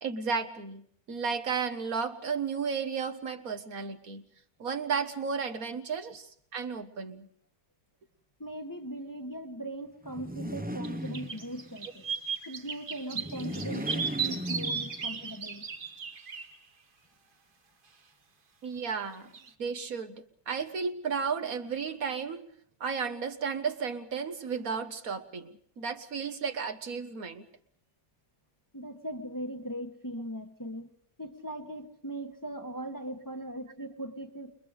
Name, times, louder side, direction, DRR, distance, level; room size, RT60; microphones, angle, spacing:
voice 1, 0.0-4.2 4.6-7.3 18.6-19.3 19.6-22.4 22.8-27.5, right 5 dB, 70° right, 8 dB, 1.8 m, -33 dB
voice 2, 8.4-12.0 12.4-15.7 28.7-30.9 31.2-34.5, right 1 dB, 15° left, 5 dB, 1.3 m, -39 dB
sound 1, 10.0-11.8 13.1-15.3, equal, 10° right, 0.7 m, -37 dB
sound 2, 10.8-10.9 11.1-16.5 19.3-19.5, right 6 dB, 40° right, 1.3 m, -35 dB
29.0 x 22.5 x 5.1 m, 0.65 s
omnidirectional pair, 1.6 m